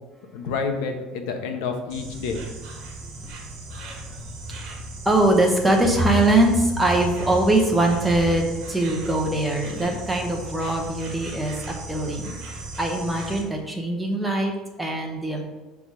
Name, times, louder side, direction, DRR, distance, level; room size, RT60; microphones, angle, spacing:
voice 1, 0.3-2.4, left 5 dB, 80° left, 5 dB, 0.9 m, -28 dB
Insect, 1.9-13.4, right 2 dB, 55° right, 1.3 m, -37 dB
voice 2, 3.8-4.2 4.6-12.3 12.8-15.4, right 1 dB, 5° right, 1 dB, 1.0 m, -22 dB
5.9 x 3.5 x 4.9 m, 1.2 s
cardioid pair, 150°, 0 cm